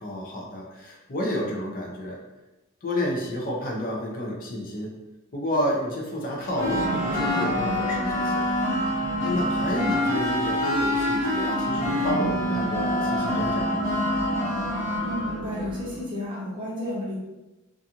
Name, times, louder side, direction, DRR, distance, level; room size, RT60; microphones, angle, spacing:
voice 1, 0.0-2.2 2.8-5.0 5.3-8.5 9.2-14.0, equal, 40° left, -2 dB, 0.5 m, -30 dB
sound 1, 6.3-16.2, right 1 dB, 90° left, 1.2 m, -34 dB
sound 2, 6.6-15.4, left 1 dB, 70° left, 0.9 m, -26 dB
voice 2, 15.0-17.2, left 1 dB, 20° right, -6 dB, 0.7 m, -32 dB
2.5 x 2.3 x 2.8 m, 1.0 s
head